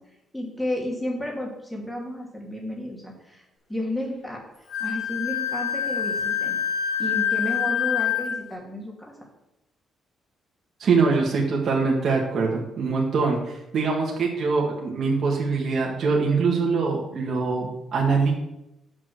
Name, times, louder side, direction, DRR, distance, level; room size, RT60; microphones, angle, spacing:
voice 1, 0.3-3.4 3.7-4.4 4.8-6.6 7.0-9.1, left 1 dB, 5° left, -3 dB, 2.6 m, -32 dB
Wind instrument woodwind instrument, 4.7-8.4, left 9 dB, 70° left, 3.6 m, -26 dB
voice 2, 10.8-18.3, right 4 dB, 55° right, -2 dB, 1.9 m, -23 dB
7.5 x 6.3 x 6.5 m, 0.89 s
cardioid pair, 90°, 0 cm